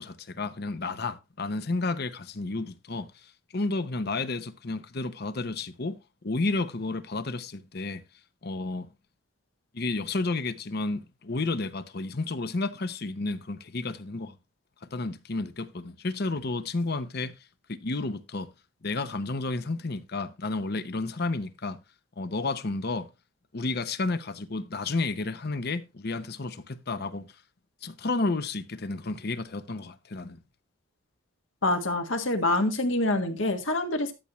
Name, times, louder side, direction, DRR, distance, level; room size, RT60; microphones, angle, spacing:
voice 1, 0.0-6.0 6.2-8.0 8.4-8.9 9.7-14.4 14.8-17.4 17.7-18.5 18.8-21.8 22.2-23.1 23.5-27.3 27.8-30.4, left 3 dB, 50° left, 0.8 m, -31 dB
voice 2, 31.6-34.1, left 2 dB, 70° left, 1.7 m, -26 dB
13.0 x 7.0 x 3.1 m
head